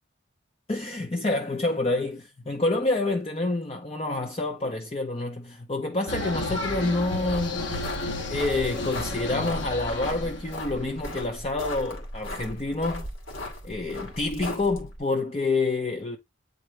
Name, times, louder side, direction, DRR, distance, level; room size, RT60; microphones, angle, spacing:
voice 1, 0.7-7.7 8.3-13.1 13.6-16.2, left 2 dB, 30° left, 0.6 m, -28 dB
sound 1, 6.1-11.0, left 2 dB, 70° left, 1.4 m, -32 dB
sound 2, 7.1-15.0, left 1 dB, 85° left, 2.6 m, -37 dB
8.6 x 3.9 x 3.1 m
head